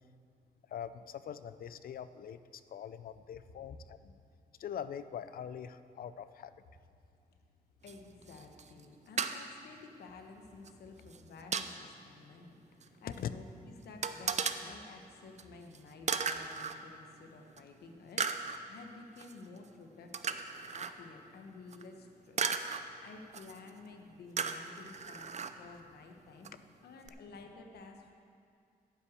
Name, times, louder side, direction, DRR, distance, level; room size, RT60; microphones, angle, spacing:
voice 1, 0.7-2.4 2.7-4.2 4.6-6.5 13.2-13.3 26.5-26.6, left 9 dB, 65° left, 13 dB, 0.5 m, -43 dB
voice 2, 7.8-22.5 23.0-26.5 26.8-28.1, left 3 dB, 80° left, 4 dB, 1.1 m, -52 dB
sound 1, 7.9-8.0 8.2-8.8 9.2-9.3 10.6-10.7 11.1-11.7 12.8-12.9 13.1-13.2 14.0-14.6 15.4-15.5 15.7-15.8 16.1-16.8 17.6-17.7 18.2-18.6 19.2-19.3 20.1-20.9 21.7-21.8 22.4-22.8 23.3-23.7 24.4-25.5 26.4-26.5 27.1-27.2, right 6 dB, 45° right, 0.6 m, -35 dB
9.9 x 5.9 x 7.9 m, 2.4 s
cardioid pair, 75°, 16 cm